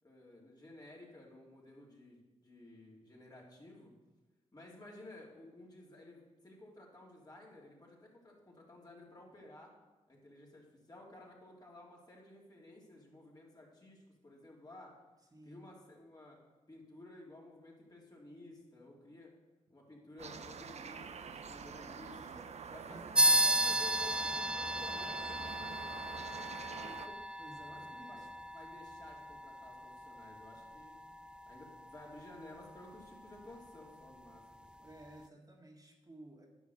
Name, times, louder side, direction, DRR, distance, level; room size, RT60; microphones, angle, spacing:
voice 1, 0.0-3.9 4.5-9.7 10.1-15.0 15.4-16.4 16.7-19.3 19.7-22.2 22.7-27.2 27.6-28.2 28.5-31.0 31.5-34.9, left 2 dB, 30° left, -3 dB, 3.2 m, -54 dB
voice 2, 15.3-15.6 22.1-22.4 22.8-23.1 27.4-28.3 34.8-36.5, right 1 dB, 30° right, -1 dB, 1.9 m, -55 dB
sound 1, 20.2-27.1, right 6 dB, 55° right, 0.6 m, -46 dB
sound 2, 23.2-33.1, right 1 dB, 5° right, 0.3 m, -35 dB
10.0 x 5.9 x 6.5 m, 1.2 s
cardioid pair, 60°, 13 cm